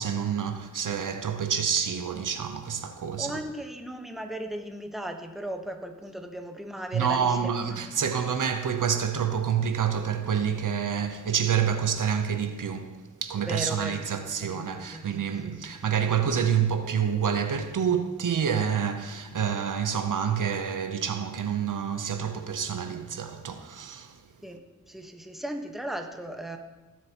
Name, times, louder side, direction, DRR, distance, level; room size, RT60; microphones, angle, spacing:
voice 1, 0.0-3.4 6.9-24.1, right 7 dB, 80° right, 0.8 m, -28 dB
voice 2, 3.2-8.0 13.4-15.0 15.4-15.8 24.4-26.6, right 1 dB, ahead, 1.1 m, -37 dB
16.0 x 7.6 x 2.9 m
cardioid pair, 45°, 31 cm